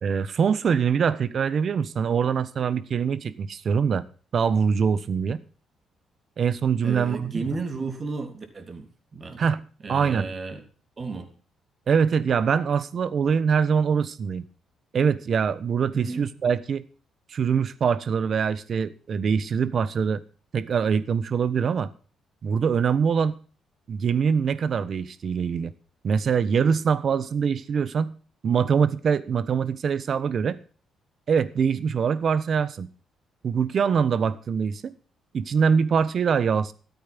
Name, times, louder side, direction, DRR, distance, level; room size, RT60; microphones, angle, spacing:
voice 1, 0.0-4.0 4.3-5.4 6.4-7.5 9.4-9.6 9.9-10.4 11.9-14.4 14.9-16.8 17.3-20.2 20.5-21.9 22.4-23.4 23.9-25.7 26.0-28.1 28.4-30.6 31.3-32.9 33.4-34.9 35.3-36.7, right 6 dB, 55° right, 1.1 m, -23 dB
voice 2, 6.8-8.9 9.1-9.4 9.8-10.6 11.0-11.3 15.9-16.3, right 4 dB, 40° right, 3.2 m, -33 dB
13.5 x 8.7 x 6.0 m
cardioid pair, 90°, 0 cm